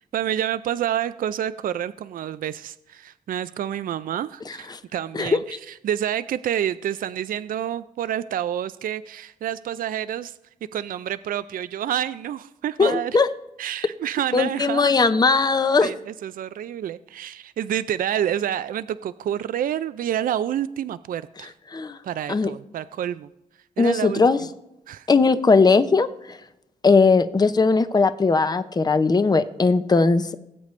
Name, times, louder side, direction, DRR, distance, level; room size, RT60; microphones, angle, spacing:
voice 1, 0.1-10.4 10.7-13.2 13.6-14.9 15.8-21.5 22.0-23.3 23.8-24.3 24.9-25.1, right 10 dB, 75° right, 14 dB, 0.4 m, -28 dB
voice 2, 12.8-13.3 14.3-15.9 21.7-22.0 22.3-22.5 23.8-24.4 25.1-26.4 26.8-30.3, left 4 dB, 25° left, 12 dB, 0.7 m, -19 dB
18.5 x 8.1 x 3.2 m, 0.87 s
cardioid pair, 75°, 15 cm